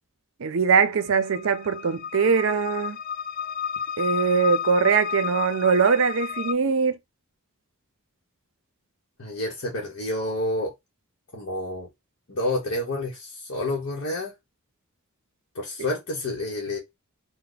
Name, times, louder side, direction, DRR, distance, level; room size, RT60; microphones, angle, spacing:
voice 1, 0.4-3.0 4.0-7.0, right 5 dB, 60° right, 0.5 m, -22 dB
sound 1, 0.8-6.5, left 8 dB, 40° left, 0.4 m, -32 dB
voice 2, 9.2-10.7 11.3-11.9 12.3-14.3 15.5-16.8, left 1 dB, 55° left, 1.0 m, -29 dB
3.3 x 2.1 x 3.9 m
head